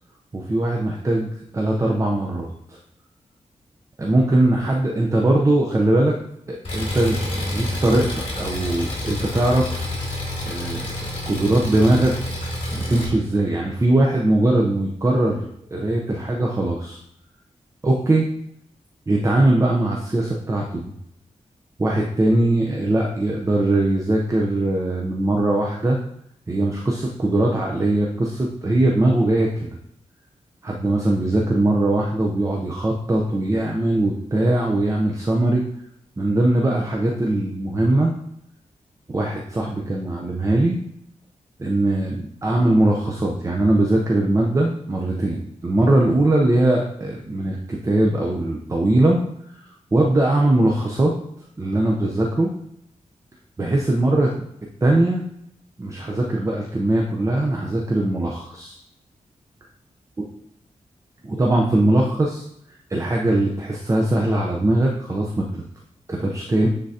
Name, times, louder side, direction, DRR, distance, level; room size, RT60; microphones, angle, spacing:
voice 1, 0.3-2.8 4.0-6.1 6.5-9.8 10.4-12.1 12.7-17.0 17.8-18.3 19.1-20.9 21.8-26.0 26.5-29.7 30.6-35.6 36.2-38.1 39.1-40.8 41.6-49.2 49.9-51.1 51.6-52.5 53.6-54.3 54.8-55.2 55.8-58.8 61.2-62.4 62.9-65.6 66.1-66.7, right 1 dB, 25° right, -1 dB, 0.7 m, -20 dB
Engine, 6.6-13.0, left 1 dB, 45° left, 2.6 m, -28 dB
9.8 x 3.8 x 2.8 m, 0.74 s
wide cardioid pair, 100°, 13 cm